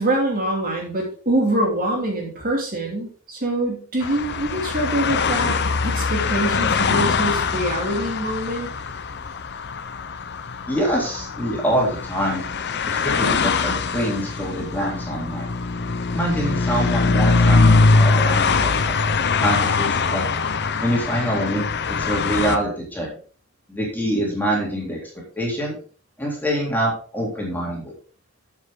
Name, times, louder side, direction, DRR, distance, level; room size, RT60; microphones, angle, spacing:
voice 1, 0.0-5.6 5.8-8.7, right 1 dB, 40° right, 0 dB, 2.7 m, -24 dB
sound 1, 4.0-22.6, left 4 dB, 50° left, 0.8 m, -22 dB
voice 2, 10.7-12.4 12.9-15.5 16.1-18.9 19.4-20.2 20.8-23.1 23.7-25.8 26.2-27.9, equal, 10° left, -3 dB, 3.4 m, -25 dB
9.8 x 7.6 x 3.8 m, 0.41 s
head